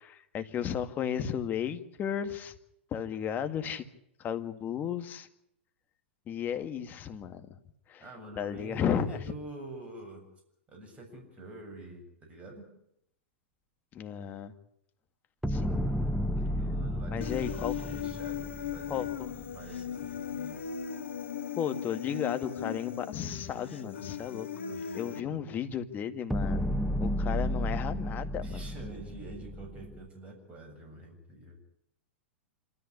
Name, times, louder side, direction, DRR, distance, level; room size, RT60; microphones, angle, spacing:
voice 1, 0.0-2.5 2.9-3.8 4.2-5.3 6.3-7.6 7.9-8.0 8.4-9.2 13.9-14.5 15.5-15.9 17.1-17.7 18.9-19.3 21.6-24.5 24.9-26.6 27.0-28.6, left 8 dB, 30° left, 9 dB, 2.0 m, -34 dB
voice 2, 8.0-10.3 10.7-12.7 16.5-17.3 17.8-19.2 19.5-20.8 24.6-25.5 28.4-31.6, right 1 dB, 20° right, 2 dB, 7.4 m, -47 dB
sound 1, 15.4-19.7 26.3-30.1, equal, ahead, 0.9 m, -32 dB
Human voice, 17.2-25.2, left 8 dB, 75° left, 1.6 m, -38 dB
27.0 x 14.0 x 10.0 m, 0.75 s
hypercardioid pair, 105°, 6 cm